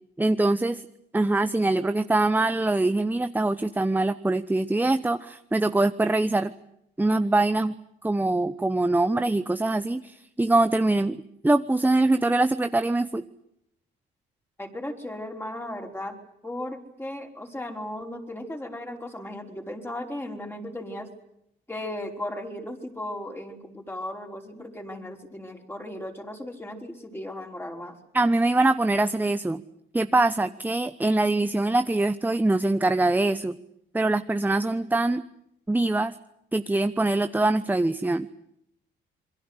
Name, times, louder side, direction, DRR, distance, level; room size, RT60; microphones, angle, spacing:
voice 1, 0.2-0.8 1.1-6.5 7.0-7.7 8.0-11.2 11.4-13.2 28.1-29.6 29.9-33.5 33.9-35.2 35.7-36.2 36.5-38.3, right 2 dB, 10° right, 10 dB, 1.0 m, -23 dB
voice 2, 14.6-16.2 16.4-21.1 21.7-28.0, left 1 dB, 10° left, 3 dB, 5.2 m, -36 dB
27.0 x 23.0 x 8.2 m, 0.77 s
cardioid pair, 90°, 20 cm